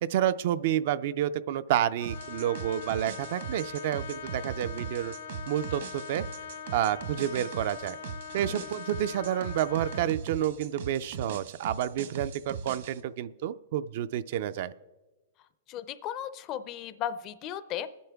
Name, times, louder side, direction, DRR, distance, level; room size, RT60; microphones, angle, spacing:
voice 1, 0.0-5.1 5.5-6.2 6.7-8.0 8.3-14.7, right 11 dB, 45° right, 15 dB, 0.3 m, -29 dB
Trumpet, 2.0-10.2, left 7 dB, 75° left, 1.0 m, -42 dB
sound 1, 2.0-13.0, right 7 dB, 60° right, 1.1 m, -40 dB
voice 2, 15.7-18.0, left 10 dB, 25° left, 13 dB, 0.4 m, -36 dB
22.5 x 9.3 x 3.4 m, 1.1 s
supercardioid pair, 175°, 0 cm